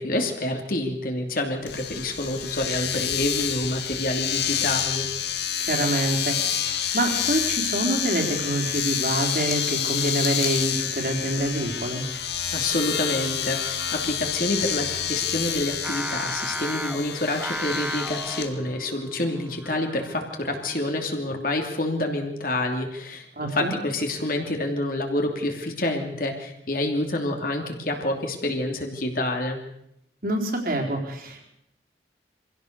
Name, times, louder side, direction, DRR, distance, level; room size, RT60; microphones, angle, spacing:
voice 1, 0.0-5.1 12.5-29.6, left 1 dB, 50° left, 3 dB, 2.8 m, -28 dB
Domestic sounds home sounds, 1.7-18.5, left 9 dB, 70° left, 1.9 m, -28 dB
voice 2, 5.6-12.0 23.3-23.7 30.2-31.4, right 1 dB, 50° right, 2 dB, 4.1 m, -26 dB
Singing, 15.8-21.1, right 1 dB, 5° right, 0.7 m, -35 dB
24.0 x 16.0 x 6.7 m, 0.79 s
head